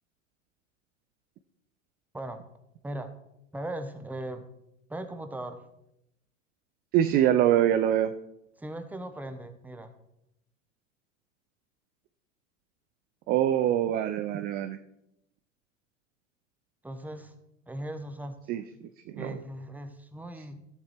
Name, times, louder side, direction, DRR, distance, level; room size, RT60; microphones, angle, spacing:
voice 1, 3.5-4.5 4.9-5.6 8.6-9.9 16.8-17.3 17.7-18.4 19.2-20.6, right 1 dB, 5° right, 8 dB, 1.0 m, -38 dB
voice 2, 6.9-8.1 13.3-14.8 18.5-18.6 19.1-19.4, right 11 dB, 25° right, 10 dB, 0.4 m, -24 dB
15.0 x 7.5 x 3.4 m, 0.83 s
figure-of-eight pair, 90°, 39 cm